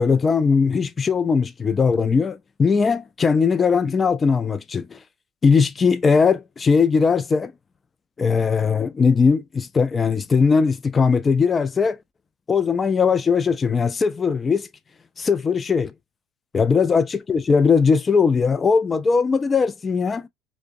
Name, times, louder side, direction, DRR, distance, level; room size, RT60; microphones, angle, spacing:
voice 1, 0.0-5.0 5.4-7.5 8.2-12.0 12.5-14.7 15.2-15.9 16.5-20.3, left 5 dB, 30° left, 0.3 m, -19 dB
2.5 x 2.1 x 2.4 m
supercardioid pair, 85°, 0 cm